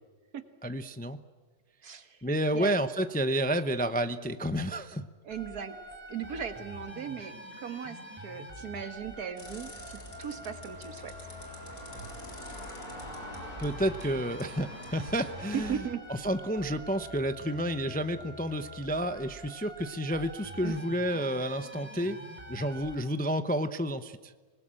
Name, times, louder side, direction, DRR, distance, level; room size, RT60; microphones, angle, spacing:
voice 1, 0.6-1.2 2.2-5.1 13.6-15.8 16.2-22.2 22.5-24.3, equal, 10° left, 10 dB, 0.4 m, -30 dB
voice 2, 1.8-2.2 2.5-2.8 5.2-5.8 6.1-11.1 15.5-16.1 20.6-20.8, right 7 dB, 80° right, 9 dB, 2.0 m, -37 dB
sound 1, 5.3-22.9, equal, 5° right, 3.3 m, -46 dB
sound 2, 9.4-15.8, left 1 dB, 70° left, 4.7 m, -45 dB
25.5 x 20.0 x 8.9 m, 1.4 s
omnidirectional pair, 1.6 m